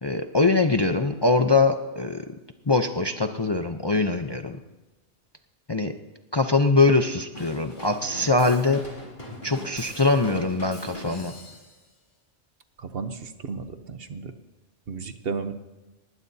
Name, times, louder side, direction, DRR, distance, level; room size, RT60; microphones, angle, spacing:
voice 1, 0.0-2.3 2.7-4.6 5.7-5.9 6.3-8.8 9.4-11.3, left 3 dB, 30° left, 6 dB, 0.6 m, -22 dB
Drum kit / Drum, 7.3-11.8, equal, 45° left, 3.9 m, -41 dB
voice 2, 12.8-14.3 14.9-15.5, right 5 dB, 60° right, 9 dB, 1.1 m, -33 dB
20.0 x 19.0 x 2.8 m, 1.1 s
omnidirectional pair, 1.2 m